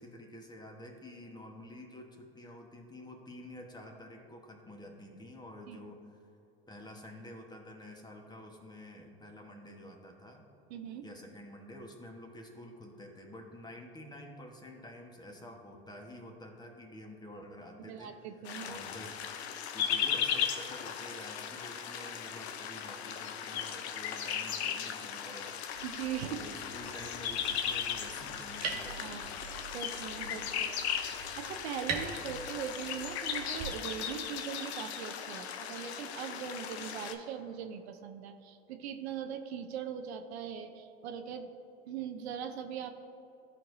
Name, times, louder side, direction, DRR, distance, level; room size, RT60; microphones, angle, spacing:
voice 1, 0.0-6.1 6.7-10.5 11.0-19.2 19.7-25.8 26.3-29.4 30.2-30.7, left 1 dB, 15° left, 2 dB, 1.2 m, -49 dB
voice 2, 10.7-11.0 17.9-18.8 25.8-26.4 29.0-29.4 29.7-30.9 31.1-41.5 41.9-42.9, right 8 dB, 80° right, 7 dB, 0.6 m, -40 dB
sound 1, 18.4-37.1, left 8 dB, 80° left, 0.6 m, -37 dB
sound 2, 25.6-33.7, right 5 dB, 50° right, 1.5 m, -44 dB
13.0 x 4.6 x 2.7 m, 2.7 s
hypercardioid pair, 85°, 32 cm